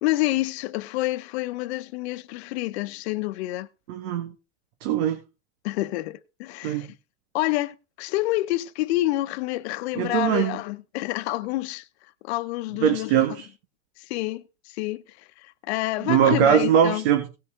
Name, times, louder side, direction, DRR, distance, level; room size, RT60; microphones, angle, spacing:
voice 1, 0.0-3.7 5.6-6.9 7.3-11.9 12.2-13.4 14.0-17.0, left 18 dB, 70° left, 1.2 m, -28 dB
voice 2, 3.9-4.3 4.8-5.2 6.6-6.9 10.0-10.6 12.8-13.5 16.1-17.3, right 9 dB, 70° right, 2.1 m, -21 dB
18.0 x 6.8 x 3.9 m
supercardioid pair, 150°, 33 cm